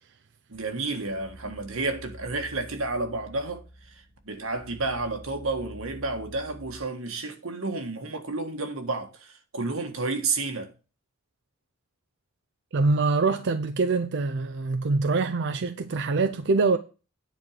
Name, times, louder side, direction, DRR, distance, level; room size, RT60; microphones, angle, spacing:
sound 1, 0.5-6.9, equal, 10° left, 2.1 m, -47 dB
voice 1, 0.5-3.6 4.2-10.7, right 3 dB, 85° right, 1.6 m, -31 dB
voice 2, 12.7-16.8, right 3 dB, 55° right, 0.5 m, -24 dB
9.9 x 4.5 x 6.6 m
head